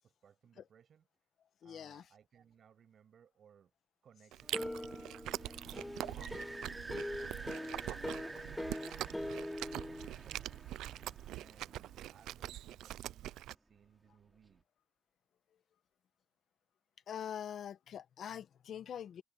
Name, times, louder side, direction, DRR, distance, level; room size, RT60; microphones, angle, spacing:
voice 1, 0.0-1.3 1.6-3.7 4.0-9.5 9.8-14.7, right 8 dB, 55° right, 6.6 m, -65 dB
voice 2, 1.6-2.0 17.1-19.2, left 9 dB, 65° left, 1.4 m, -44 dB
Chewing mastication, 4.3-13.5, right 14 dB, 85° right, 0.3 m, -44 dB
sound 1, 4.5-10.1, left 1 dB, 5° left, 0.4 m, -43 dB
sound 2, 5.4-12.7, right 2 dB, 20° right, 2.7 m, -50 dB
cardioid pair, 90°, 0 cm